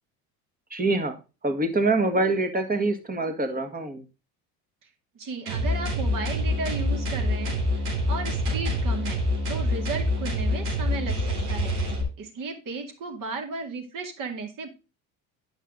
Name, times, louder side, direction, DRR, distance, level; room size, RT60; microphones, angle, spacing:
voice 1, 0.7-1.2 1.4-4.0, right 2 dB, 20° right, 6 dB, 1.7 m, -25 dB
voice 2, 5.1-9.2 9.5-11.7 12.2-14.7, right 4 dB, 50° right, 3 dB, 2.5 m, -35 dB
sound 1, 5.5-12.0, left 1 dB, 90° right, 3.5 m, -26 dB
9.2 x 5.7 x 3.8 m, 0.31 s
hypercardioid pair, 75°, 43 cm